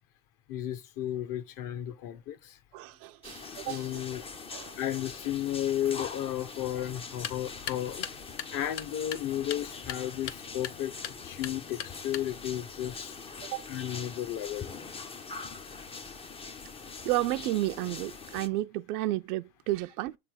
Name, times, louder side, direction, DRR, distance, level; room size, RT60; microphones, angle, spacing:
voice 1, 0.5-2.5 3.6-4.2 4.8-8.1 8.5-13.1 13.7-14.7, left 11 dB, 40° left, 0.8 m, -33 dB
voice 2, 2.7-4.0 4.5-4.7 13.4-13.7 17.0-20.2, right 16 dB, 70° right, 0.6 m, -32 dB
sound 1, 3.2-18.5, left 4 dB, 15° left, 0.4 m, -43 dB
sound 2, 7.1-12.6, left 10 dB, 75° left, 1.0 m, -42 dB
6.8 x 3.4 x 6.0 m
supercardioid pair, 105°, 48 cm